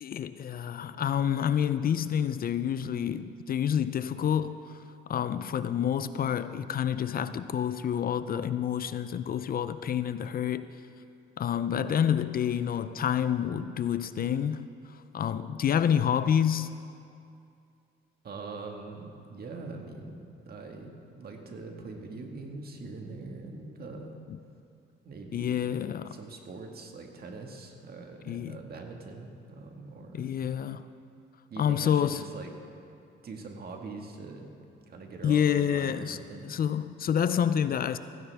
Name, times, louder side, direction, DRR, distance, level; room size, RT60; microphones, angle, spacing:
voice 1, 0.0-10.8 11.4-16.7 24.3-24.4 25.3-26.2 28.3-28.6 30.1-30.9 31.6-32.3 35.2-36.2 36.4-38.0, left 9 dB, 50° left, 13 dB, 0.5 m, -28 dB
voice 2, 18.2-24.1 25.0-25.7 26.1-30.3 31.5-32.5 33.2-34.5 34.9-36.5, right 3 dB, 50° right, 3 dB, 1.8 m, -43 dB
16.0 x 16.0 x 3.5 m, 2.5 s
cardioid pair, 90°, 20 cm